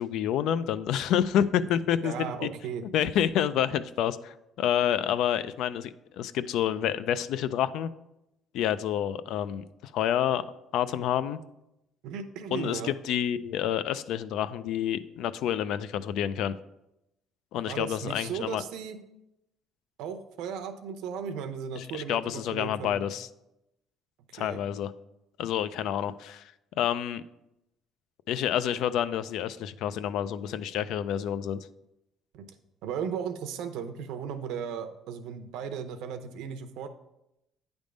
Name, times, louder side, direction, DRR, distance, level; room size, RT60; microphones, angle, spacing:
voice 1, 0.0-2.5 2.9-7.9 8.5-10.4 10.7-11.4 12.5-16.5 17.5-18.6 21.8-23.3 24.3-24.9 25.4-26.5 26.8-27.2 28.3-31.7, left 10 dB, 70° left, 14 dB, 0.3 m, -28 dB
voice 2, 2.0-2.8 12.0-12.9 17.7-19.0 20.0-23.0 24.4-24.6 32.3-32.4 32.8-36.9, right 7 dB, 85° right, 8 dB, 0.7 m, -36 dB
9.2 x 3.5 x 5.1 m, 0.87 s
cardioid pair, 145°, 0 cm